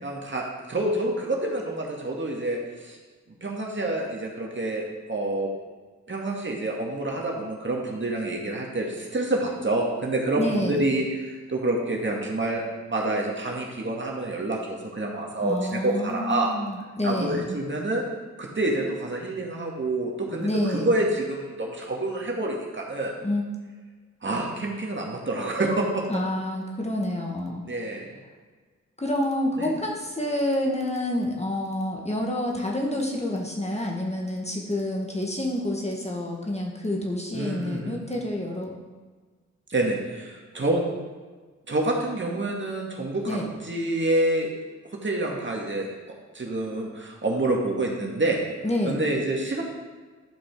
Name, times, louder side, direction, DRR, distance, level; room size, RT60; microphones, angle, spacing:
voice 1, 0.0-3.0 3.4-5.5 6.1-12.6 12.9-16.5 17.0-18.0 18.4-23.1 24.2-26.0 27.6-28.1 29.6-29.7 37.3-38.0 39.7-40.8 41.7-43.4 43.6-44.5 45.0-45.9 46.3-48.4 48.8-49.6, right 2 dB, 40° right, -1 dB, 2.1 m, -27 dB
voice 2, 10.4-10.8 15.4-17.4 20.4-20.9 23.2-23.4 26.1-27.7 29.0-38.7 43.3-43.5 48.6-49.0, left 1 dB, 20° left, -1 dB, 1.8 m, -28 dB
11.5 x 5.1 x 4.9 m, 1.4 s
cardioid pair, 50°, 30 cm